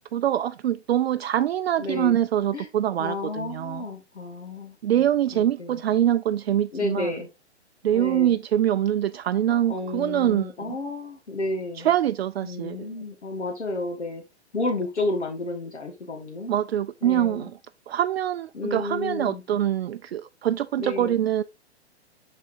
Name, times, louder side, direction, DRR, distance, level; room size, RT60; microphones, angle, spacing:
voice 1, 0.1-3.8 4.8-7.1 7.8-10.8 11.8-12.9 16.5-17.6 17.9-21.4, right 11 dB, 65° right, 0.5 m, -24 dB
voice 2, 1.8-2.1 2.5-2.7 3.0-5.0 5.3-5.8 6.7-7.3 7.9-8.4 9.7-11.9 12.4-14.2 14.5-16.5 17.0-17.5 18.5-19.4 20.8-21.2, left 2 dB, 80° left, 1.6 m, -31 dB
11.5 x 4.1 x 2.6 m
figure-of-eight pair, 115°, 34 cm